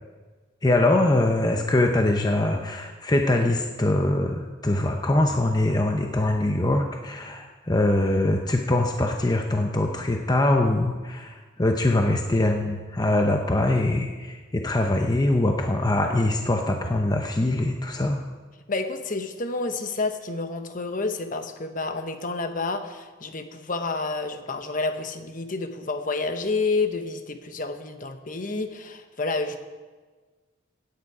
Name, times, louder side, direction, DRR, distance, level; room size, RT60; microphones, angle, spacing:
voice 1, 0.6-18.2, left 1 dB, 20° left, 3 dB, 0.7 m, -23 dB
voice 2, 18.7-29.6, left 3 dB, 45° left, 8 dB, 1.0 m, -29 dB
16.5 x 9.6 x 4.9 m, 1.4 s
head